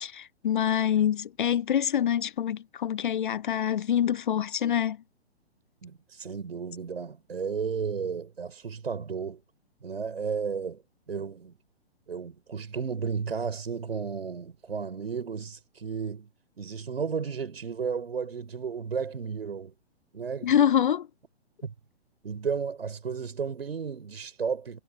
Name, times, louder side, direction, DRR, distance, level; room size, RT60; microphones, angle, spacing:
voice 1, 0.0-5.0 20.4-21.1, left 9 dB, 50° left, 0.8 m, -25 dB
voice 2, 5.8-9.4 9.8-10.8 11.1-11.6 12.1-16.3 16.6-19.7 20.1-20.6 21.6-21.7 22.2-24.8, right 6 dB, 65° right, 5.7 m, -33 dB
figure-of-eight pair, 120°, 33 cm